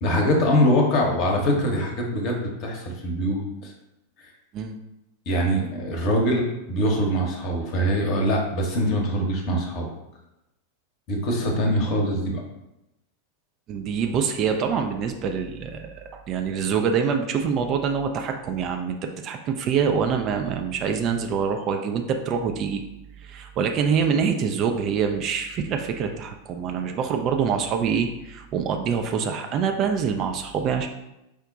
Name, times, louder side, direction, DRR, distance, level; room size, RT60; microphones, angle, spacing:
voice 1, 0.0-3.7 5.3-9.9 11.1-12.4, equal, 40° left, 1 dB, 0.9 m, -23 dB
voice 2, 13.7-19.0 19.2-22.8 23.2-30.9, right 6 dB, 35° right, 4 dB, 0.3 m, -25 dB
4.9 x 2.1 x 3.8 m, 0.91 s
figure-of-eight pair, 90°, 0 cm